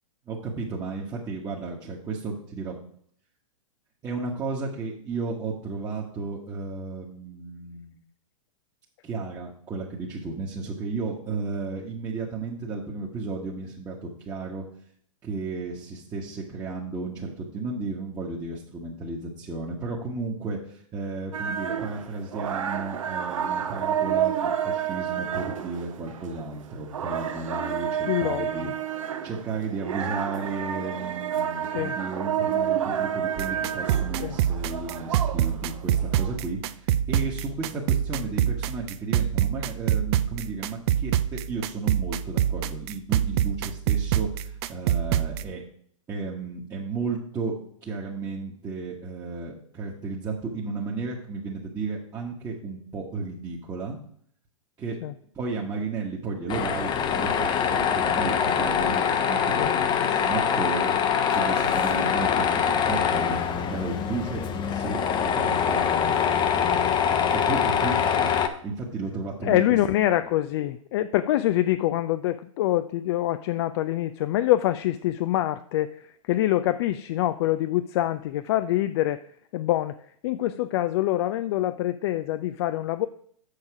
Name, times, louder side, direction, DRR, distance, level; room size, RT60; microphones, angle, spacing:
voice 1, 0.3-2.8 4.0-8.0 9.0-14.6 15.2-45.6 46.1-47.5 47.8-54.0 54.8-55.0 55.3-61.0 61.3-66.8 67.3-68.3 68.6-69.6 70.2-70.3, right 3 dB, 20° right, -4 dB, 1.4 m, -33 dB
sound 1, 21.3-36.4, right 9 dB, 70° right, 1.0 m, -30 dB
voice 2, 28.1-28.7 31.7-32.0 34.2-34.4 55.0-55.1 59.6-60.2 69.4-79.2 79.5-80.0 80.2-83.1, left 14 dB, 50° left, 11 dB, 0.4 m, -25 dB
sound 2, 33.4-45.4, right 10 dB, 50° right, 0.5 m, -26 dB
Tools, 56.5-68.5, left 7 dB, 25° left, 0.9 m, -24 dB
6.9 x 6.7 x 4.8 m, 0.62 s
hypercardioid pair, 110°, 17 cm